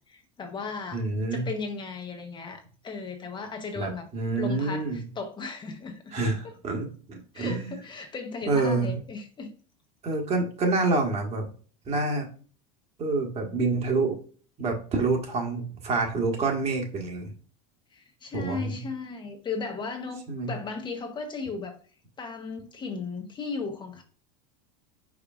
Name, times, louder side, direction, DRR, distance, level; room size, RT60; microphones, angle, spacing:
voice 1, 0.1-1.1 1.3-4.1 4.4-6.1 7.3-9.5 17.9-21.8 22.2-24.0, left 4 dB, 25° left, 0.8 m, -36 dB
voice 2, 0.9-1.5 3.8-5.0 6.1-7.7 8.5-9.0 10.0-11.5 11.8-12.3 13.0-14.2 14.6-17.3 18.3-18.8 20.3-20.5, right 3 dB, 35° right, 1.5 m, -27 dB
4.9 x 4.5 x 2.4 m
supercardioid pair, 115°, 18 cm